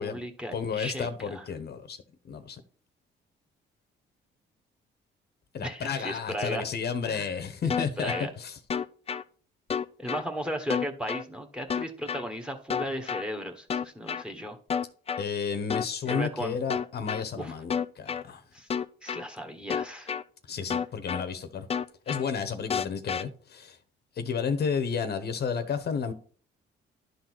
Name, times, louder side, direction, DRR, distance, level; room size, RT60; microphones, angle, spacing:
voice 1, 0.0-1.5 5.6-6.6 7.0-7.3 8.0-8.3 10.0-14.6 16.0-16.6 17.4-17.5 18.5-18.7 19.0-20.1, equal, 5° right, 1.3 m, -35 dB
voice 2, 0.5-2.0 2.3-2.6 5.5-8.6 15.2-18.4 20.5-21.7 22.1-23.8 24.2-26.1, left 6 dB, 55° left, 0.9 m, -32 dB
sound 1, 7.7-8.2 8.7-9.2 9.7-10.2 10.7-11.2 11.7-12.2 12.7-13.2 13.7-14.2 14.7-15.2 15.7-16.2 16.7-17.2 17.7-18.2 18.7-19.2 19.7-20.2 20.7-21.2 21.7-22.2 22.7-23.2, left 7 dB, 30° left, 0.5 m, -30 dB
11.0 x 3.9 x 4.6 m
cardioid pair, 90°, 20 cm